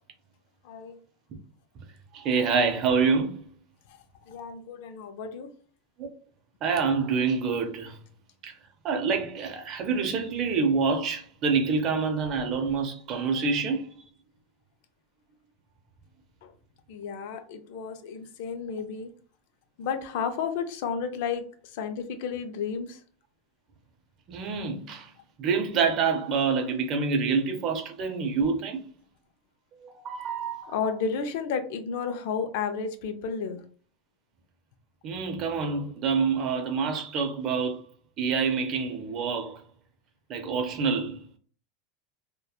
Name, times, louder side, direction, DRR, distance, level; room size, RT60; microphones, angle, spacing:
voice 1, 0.6-1.0 3.9-4.0 4.2-5.5 16.4-16.5 16.9-19.1 19.8-23.0 30.7-33.6, left 6 dB, 65° left, 0.4 m, -32 dB
voice 2, 2.1-3.4 6.0-6.1 6.6-8.0 8.4-8.5 8.8-13.9 24.3-25.1 25.4-28.8 29.8-30.8 35.0-37.8 38.2-39.6 40.3-41.2, right 5 dB, 35° right, 0.5 m, -27 dB
2.8 x 2.2 x 2.2 m
supercardioid pair, 160°, 0 cm